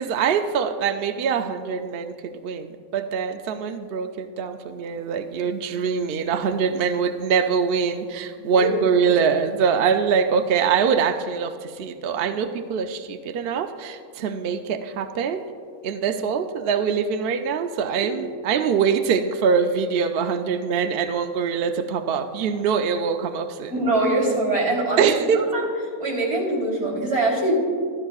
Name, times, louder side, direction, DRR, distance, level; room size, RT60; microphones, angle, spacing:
voice 1, 0.0-15.4 15.8-23.7 25.0-25.4, right 6 dB, 70° right, 7 dB, 0.5 m, -23 dB
voice 2, 8.3-8.7 23.7-25.7 26.0-27.5, right 2 dB, 50° right, -4 dB, 3.6 m, -23 dB
14.5 x 12.5 x 2.4 m, 2.1 s
omnidirectional pair, 1.6 m